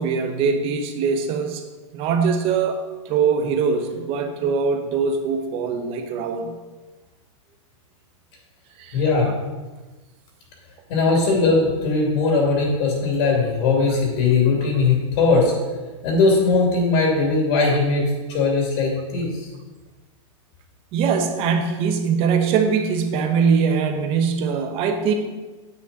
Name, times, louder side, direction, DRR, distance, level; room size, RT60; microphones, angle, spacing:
voice 1, 0.0-1.6 1.9-2.8 3.0-6.6 8.8-9.0 20.9-25.1, right 6 dB, 35° right, 6 dB, 1.2 m, -22 dB
voice 2, 8.9-9.3 10.9-15.5 16.0-18.0 18.3-19.5, left 3 dB, 50° left, -1 dB, 2.9 m, -19 dB
9.2 x 8.3 x 4.2 m, 1.3 s
supercardioid pair, 150°, 17 cm